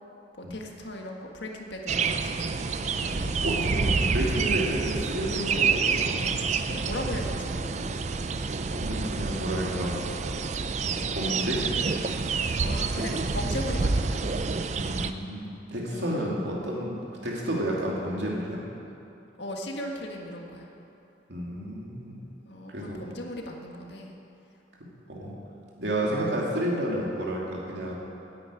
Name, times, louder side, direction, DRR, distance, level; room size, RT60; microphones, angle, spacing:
voice 1, 0.3-2.6 6.7-7.9 12.5-14.3 15.9-16.4 19.4-20.7 22.5-24.2, left 1 dB, 70° left, 1 dB, 1.6 m, -37 dB
sound 1, 1.9-15.1, right 4 dB, 40° right, 0.4 m, -28 dB
voice 2, 2.9-6.6 8.5-10.0 10.8-11.6 14.8-16.9 17.2-18.6 21.3-22.2 22.7-23.0 25.1-25.3 25.8-28.0, right 1 dB, 70° right, -3 dB, 2.7 m, -31 dB
9.7 x 9.6 x 9.0 m, 2.8 s
head